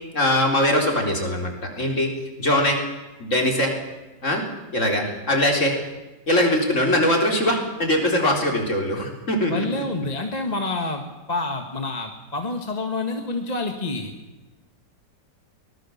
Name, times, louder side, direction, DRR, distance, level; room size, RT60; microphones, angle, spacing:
voice 1, 0.1-2.1 2.4-2.8 3.2-3.7 4.2-4.4 4.7-5.8 6.3-9.7, left 1 dB, 45° left, 2 dB, 4.3 m, -21 dB
voice 2, 9.5-11.0 11.3-14.1, left 2 dB, 25° left, 4 dB, 1.6 m, -28 dB
23.5 x 19.5 x 7.2 m, 1.1 s
omnidirectional pair, 1.9 m